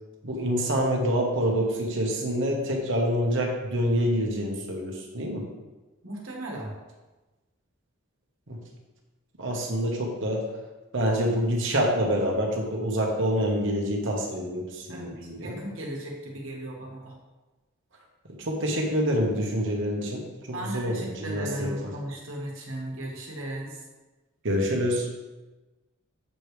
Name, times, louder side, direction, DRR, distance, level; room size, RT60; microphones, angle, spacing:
voice 1, 0.2-5.5 8.5-8.6 9.4-10.5 10.9-15.6 18.4-21.7 24.4-25.1, equal, 65° right, -1 dB, 1.2 m, -26 dB
voice 2, 6.0-6.8 14.9-17.2 20.5-23.9, right 1 dB, 80° right, -2 dB, 1.5 m, -36 dB
7.5 x 5.0 x 3.3 m, 1.2 s
head